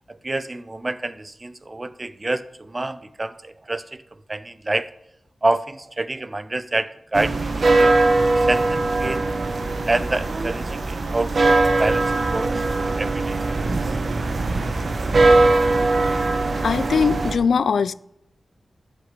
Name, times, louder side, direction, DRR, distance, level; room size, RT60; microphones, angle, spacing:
voice 1, 0.1-4.0 4.3-4.9 5.4-7.9 8.4-9.3 9.9-13.7, right 2 dB, 25° right, 0.6 m, -27 dB
sound 1, 7.1-17.3, right 2 dB, 50° right, 1.1 m, -20 dB
voice 2, 16.0-16.3 16.6-17.9, left 6 dB, 85° left, 0.4 m, -21 dB
13.5 x 6.8 x 6.7 m
wide cardioid pair, 125°, 0 cm